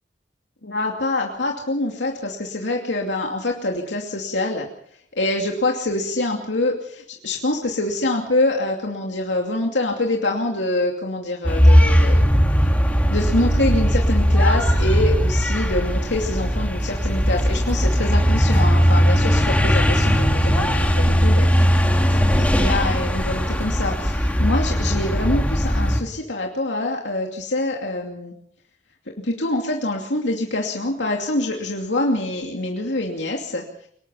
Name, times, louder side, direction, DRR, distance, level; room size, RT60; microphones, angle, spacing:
voice 1, 0.6-4.7 5.2-12.3 13.1-21.5 22.1-28.3 29.2-33.9, left 2 dB, 90° left, 0 dB, 2.7 m, -25 dB
sound 1, 11.4-26.0, equal, 10° left, 2.4 m, -18 dB
24.0 x 19.5 x 5.7 m, 0.65 s
head